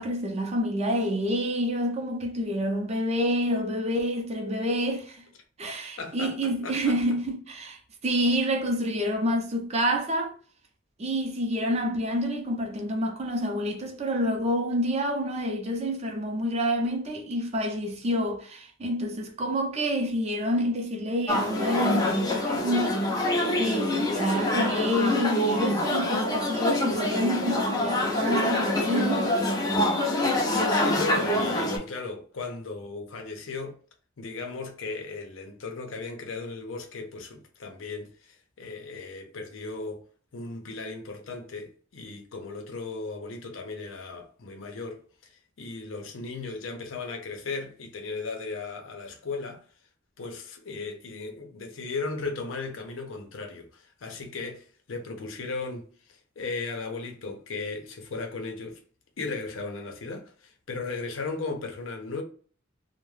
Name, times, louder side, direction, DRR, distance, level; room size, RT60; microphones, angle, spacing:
voice 1, 0.0-5.3 5.6-10.3 11.0-23.1 23.6-29.4, equal, 35° right, 0.5 m, -28 dB
voice 2, 6.0-7.0 30.3-33.8 34.2-40.0 40.3-45.3 45.6-49.6 50.2-55.9 56.4-58.8 59.2-62.2, left 3 dB, 90° left, 0.6 m, -36 dB
sound 1, 21.3-31.8, left 1 dB, 20° left, 0.5 m, -25 dB
2.3 x 2.1 x 3.1 m
head